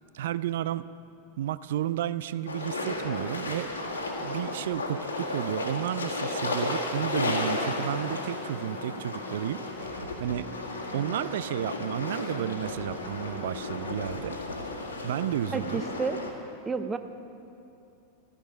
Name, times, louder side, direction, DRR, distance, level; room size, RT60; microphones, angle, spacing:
voice 1, 0.1-0.8 1.4-9.6 9.9-10.5 10.9-14.4 15.0-15.9, right 11 dB, 55° right, 16 dB, 0.4 m, -32 dB
sound 1, 2.5-16.3, left 2 dB, 75° left, 1.7 m, -34 dB
sound 2, 7.8-14.0, left 3 dB, 20° left, 0.8 m, -47 dB
voice 2, 15.5-16.2 16.7-17.0, right 4 dB, 15° right, 10 dB, 0.7 m, -30 dB
14.5 x 14.0 x 5.2 m, 2.7 s
figure-of-eight pair, 90°, 0 cm